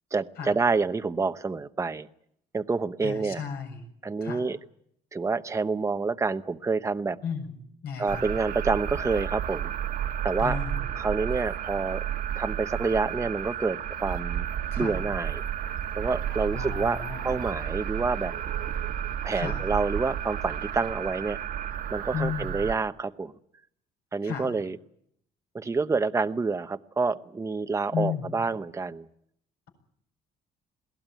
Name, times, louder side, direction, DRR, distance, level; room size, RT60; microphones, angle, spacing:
voice 1, 0.1-2.1 2.5-3.4 4.0-4.6 5.1-7.2 8.0-9.7 10.2-10.6 10.9-12.0 12.4-14.5 14.8-15.4 16.0-18.3 19.2-21.4 21.9-23.3 24.1-24.8 25.5-29.1, right 4 dB, 15° right, 10 dB, 0.9 m, -28 dB
voice 2, 3.0-3.8 4.2-4.5 7.2-7.5 7.8-8.3 10.4-10.9 14.7-15.0 16.5-17.3 19.3-19.6 22.1-22.6 24.2-24.5 27.9-28.3, left 7 dB, 70° left, 4 dB, 7.4 m, -33 dB
sound 1, 8.1-22.8, right 10 dB, 60° right, 1.4 m, -32 dB
21.5 x 17.5 x 9.1 m, 0.71 s
cardioid pair, 110°, 17 cm